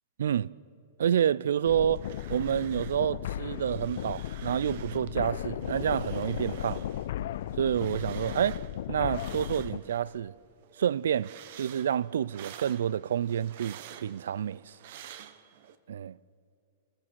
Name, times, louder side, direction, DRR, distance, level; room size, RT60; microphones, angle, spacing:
voice 1, 0.2-0.5 1.0-2.0 2.3-6.8 7.6-8.6 8.9-10.3 10.8-11.3 11.6-14.7 15.9-16.2, right 9 dB, 80° right, 0.4 m, -28 dB
sound 1, 1.6-9.8, left 12 dB, 70° left, 0.6 m, -36 dB
sound 2, 1.7-3.1 3.4-5.1 5.5-10.2 10.6-15.8, right 10 dB, 60° right, 1.2 m, -50 dB
30.0 x 15.0 x 6.4 m
hypercardioid pair, 120°, 0 cm